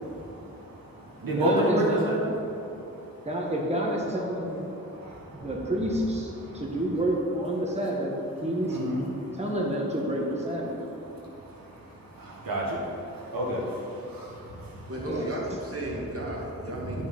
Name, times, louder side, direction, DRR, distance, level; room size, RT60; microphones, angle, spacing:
voice 1, 0.0-3.1 4.7-5.5 6.4-6.6 8.7-9.4 11.1-14.9 16.7-17.1, right 1 dB, 85° right, -4 dB, 1.8 m, -31 dB
voice 2, 1.4-2.2 3.2-4.6 5.3-8.1 8.4-8.8 9.4-10.7 15.1-15.3, right 1 dB, 20° right, -2 dB, 1.6 m, -29 dB
voice 3, 14.9-17.1, right 1 dB, 45° right, -3 dB, 2.2 m, -34 dB
9.2 x 6.2 x 5.5 m, 2.9 s
cardioid pair, 55°, 34 cm